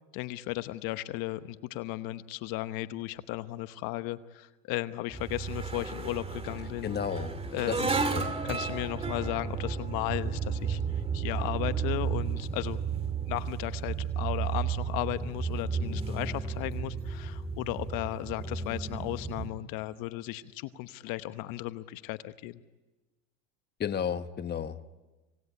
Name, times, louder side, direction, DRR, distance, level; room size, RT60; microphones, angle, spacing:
voice 1, 0.1-6.9 7.5-8.0 8.4-10.8 11.1-22.6, left 17 dB, 60° left, 12 dB, 1.1 m, -35 dB
sound 1, 5.1-19.5, right 6 dB, 15° right, 2.3 m, -33 dB
voice 2, 6.8-7.8 8.1-8.3 23.8-24.9, left 8 dB, 25° left, 11 dB, 1.2 m, -33 dB
26.5 x 19.0 x 10.0 m, 1.2 s
supercardioid pair, 110°, 38 cm